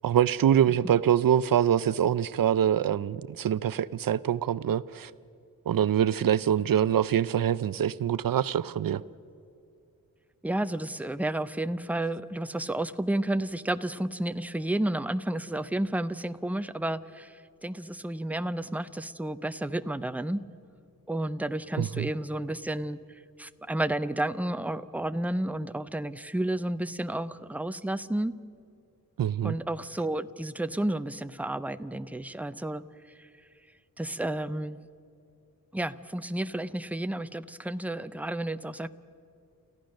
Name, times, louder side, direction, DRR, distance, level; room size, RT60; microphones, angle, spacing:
voice 1, 0.0-5.1 5.7-9.0 21.8-22.1 29.2-29.6, right 9 dB, 70° right, 0.5 m, -24 dB
voice 2, 10.4-20.4 21.1-23.0 23.4-28.3 29.4-32.8 33.2-33.3 34.0-34.8 35.7-38.9, right 1 dB, 5° right, 0.5 m, -31 dB
29.0 x 14.5 x 6.5 m
wide cardioid pair, 125°, 35 cm